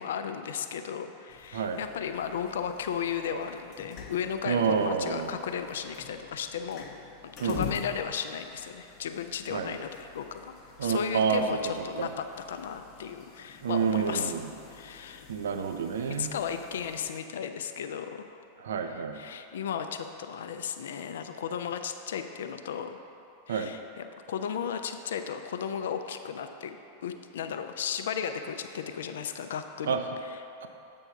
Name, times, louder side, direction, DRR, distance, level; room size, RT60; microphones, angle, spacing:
voice 1, 0.0-6.9 7.2-10.5 10.8-14.4 14.7-15.3 16.1-18.4 18.8-23.0 23.5-30.5, left 7 dB, 60° left, 8 dB, 0.3 m, -35 dB
sound 1, 1.3-17.1, left 7 dB, 40° left, 0.7 m, -47 dB
voice 2, 4.5-5.3 7.4-7.6 9.5-9.7 10.8-11.4 12.0-12.1 13.6-14.5 15.3-16.3 18.6-19.2 23.5-23.7 29.9-30.0, right 6 dB, 65° right, 7 dB, 0.4 m, -28 dB
7.8 x 3.5 x 5.6 m, 2.8 s
figure-of-eight pair, 90°, 0 cm